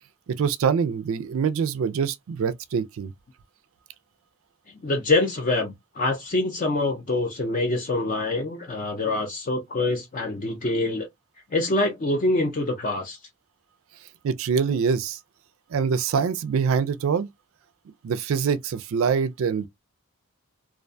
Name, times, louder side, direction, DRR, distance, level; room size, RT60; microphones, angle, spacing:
voice 1, 0.4-3.1 14.2-15.2 15.7-17.3 18.0-19.7, right 6 dB, 65° right, 0.3 m, -24 dB
voice 2, 4.8-11.1 11.5-13.2, left 2 dB, 35° left, 0.5 m, -25 dB
2.4 x 2.2 x 2.5 m
head